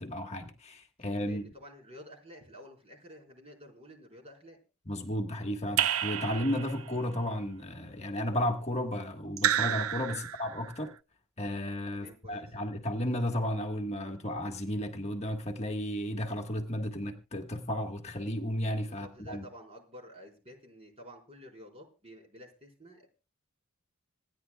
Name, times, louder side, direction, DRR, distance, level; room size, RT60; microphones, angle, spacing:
voice 1, 0.0-1.4 4.9-10.9 11.4-19.4, equal, 30° left, 1.5 m, -33 dB
voice 2, 1.2-4.6 10.1-10.3 11.9-12.5 18.7-23.1, equal, 30° right, 4.5 m, -51 dB
Raindrop / Drip, 5.8-7.0 9.4-10.7, right 10 dB, 90° right, 0.6 m, -30 dB
26.5 x 10.0 x 2.3 m
head